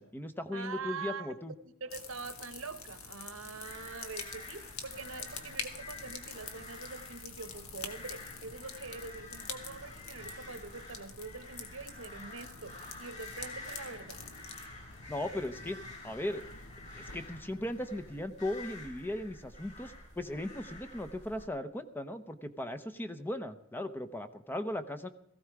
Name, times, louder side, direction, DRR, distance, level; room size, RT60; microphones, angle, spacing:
voice 1, 0.0-1.5 15.1-15.8 16.0-16.4 16.9-25.1, left 1 dB, 10° left, 10 dB, 0.8 m, -37 dB
voice 2, 0.5-1.3 1.6-14.2, right 4 dB, 70° right, 11 dB, 1.2 m, -44 dB
sound 1, 1.9-18.2, left 5 dB, 80° left, 1.7 m, -47 dB
sound 2, 3.6-21.5, left 2 dB, 35° left, 4.1 m, -49 dB
17.0 x 15.0 x 4.7 m, 0.72 s
head